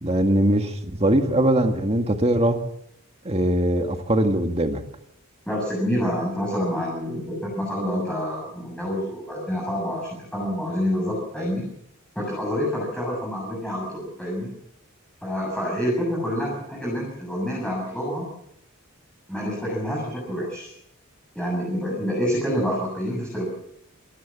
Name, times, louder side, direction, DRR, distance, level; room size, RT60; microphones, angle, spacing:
voice 1, 0.0-2.6 3.3-4.8, right 1 dB, 30° right, 5 dB, 2.0 m, -21 dB
voice 2, 5.5-11.7 12.1-14.5 15.2-18.2 19.3-20.7 21.3-23.5, equal, 5° left, -4 dB, 7.8 m, -27 dB
28.0 x 15.5 x 7.5 m, 0.77 s
head